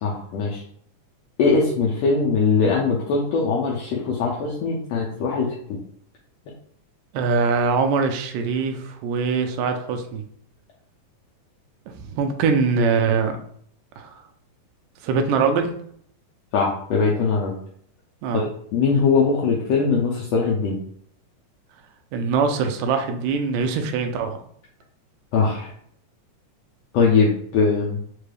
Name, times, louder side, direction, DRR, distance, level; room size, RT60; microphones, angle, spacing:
voice 1, 0.0-0.6 1.4-5.5 16.5-17.5 18.3-20.8 25.3-25.7 26.9-28.0, left 4 dB, 85° left, -4 dB, 1.5 m, -21 dB
voice 2, 7.1-10.2 12.0-13.4 14.0-14.1 15.0-15.7 18.2-18.5 22.1-24.4, right 5 dB, 80° right, 5 dB, 1.7 m, -22 dB
4.9 x 2.3 x 3.2 m, 0.63 s
omnidirectional pair, 3.7 m